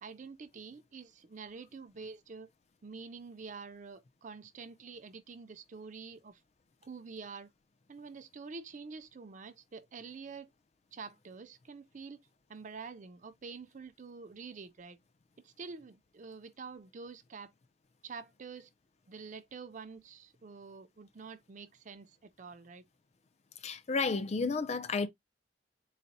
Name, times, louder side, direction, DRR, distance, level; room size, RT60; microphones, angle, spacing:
voice 1, 0.0-2.5 2.8-6.4 6.8-7.5 7.9-10.5 10.9-12.2 12.5-15.0 15.4-17.5 18.0-18.7 19.1-22.8, right 5 dB, 45° right, 0.5 m, -47 dB
voice 2, 23.6-25.1, left 4 dB, 40° left, 0.5 m, -31 dB
4.0 x 2.1 x 4.0 m
head